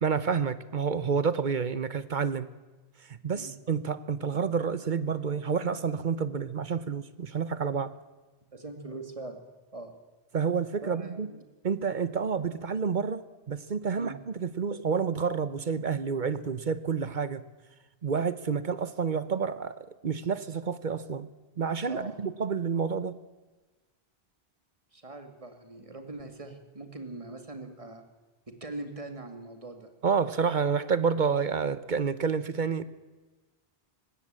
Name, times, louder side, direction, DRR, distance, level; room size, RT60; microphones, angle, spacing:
voice 1, 0.0-2.5 3.1-7.9 10.3-11.3 11.6-17.4 18.0-21.3 21.6-23.2 30.0-32.8, right 6 dB, 50° right, 15 dB, 0.9 m, -29 dB
voice 2, 8.5-9.4 9.7-9.9 10.8-11.4 14.0-14.2 21.9-22.2 24.9-28.0 28.5-29.9, right 2 dB, 30° right, 6 dB, 2.3 m, -42 dB
19.5 x 16.0 x 8.8 m, 1.2 s
omnidirectional pair, 1.1 m